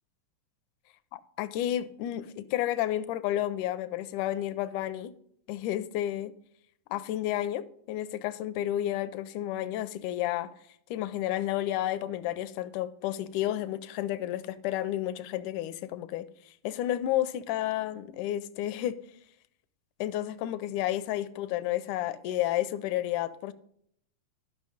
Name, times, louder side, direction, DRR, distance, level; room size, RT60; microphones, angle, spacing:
voice 1, 1.1-5.1 5.5-6.3 6.9-10.5 10.9-16.3 16.6-19.0 20.0-23.5, left 13 dB, 80° left, 1.8 m, -31 dB
12.5 x 5.9 x 4.9 m
omnidirectional pair, 3.9 m